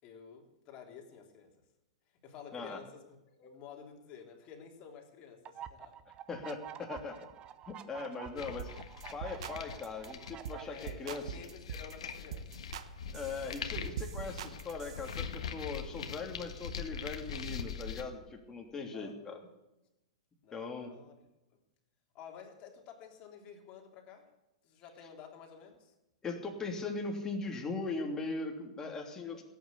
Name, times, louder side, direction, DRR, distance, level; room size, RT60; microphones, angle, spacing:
voice 1, 0.0-1.6 2.1-6.0 10.6-12.6 13.1-13.4 18.9-19.4 20.4-21.6 22.1-24.3 24.6-25.9, left 7 dB, 35° left, 2 dB, 3.4 m, -52 dB
sound 1, 5.4-10.6, right 10 dB, 30° right, 0.9 m, -48 dB
voice 2, 6.3-7.3 7.7-8.8 9.1-11.2 13.1-19.4 20.5-20.9 26.2-29.4, left 3 dB, 15° left, 2 dB, 3.0 m, -40 dB
sound 2, 8.3-18.0, left 6 dB, 70° left, 1.5 m, -42 dB
sound 3, 8.6-8.8 9.0-9.6 9.8-10.1 10.4-10.6 10.9-11.9 12.3-12.9 13.1-15.2, right 9 dB, 60° right, 1.1 m, -43 dB
17.0 x 8.8 x 8.3 m, 0.95 s
hypercardioid pair, 110°, 3 cm